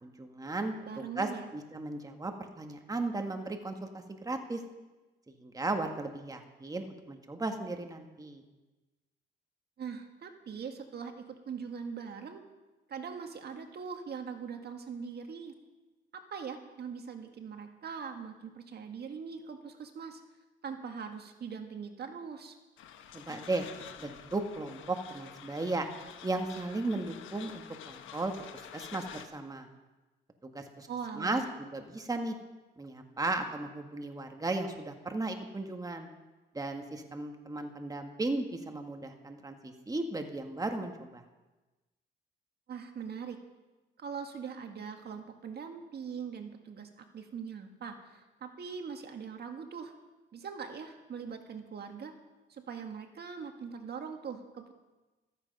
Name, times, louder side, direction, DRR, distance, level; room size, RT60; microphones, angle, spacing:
voice 1, 0.0-4.6 5.4-8.4 23.1-23.7 24.0-25.9 26.2-29.7 30.4-30.9 31.2-31.4 31.7-32.3 32.8-36.1 36.5-41.2, right 2 dB, 20° right, 4 dB, 1.6 m, -36 dB
voice 2, 0.9-1.5 9.8-12.4 12.9-15.5 16.1-20.2 20.6-22.6 30.9-31.4 42.7-43.4 44.0-49.9 50.3-52.1 52.5-54.7, right 6 dB, 55° right, 5 dB, 1.7 m, -41 dB
sound 1, 22.8-29.3, left 9 dB, 80° left, 1.3 m, -49 dB
14.5 x 13.5 x 5.4 m, 1.2 s
cardioid pair, 90°, 20 cm